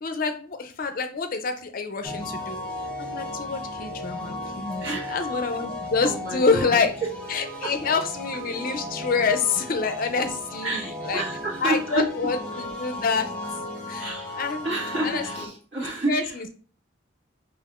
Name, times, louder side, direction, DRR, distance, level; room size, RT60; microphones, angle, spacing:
voice 1, 0.0-2.6 3.0-6.9 7.3-11.2 11.6-13.3 13.9-14.7 15.0-15.5 16.1-16.5, left 4 dB, 45° left, 7 dB, 0.4 m, -27 dB
sound 1, 2.0-15.5, left 1 dB, 5° left, 0.7 m, -35 dB
voice 2, 4.8-5.2 6.0-6.8 10.6-12.1 14.0-14.4 14.6-16.3, right 1 dB, 60° right, -5 dB, 1.5 m, -29 dB
5.2 x 2.5 x 2.4 m, 0.42 s
head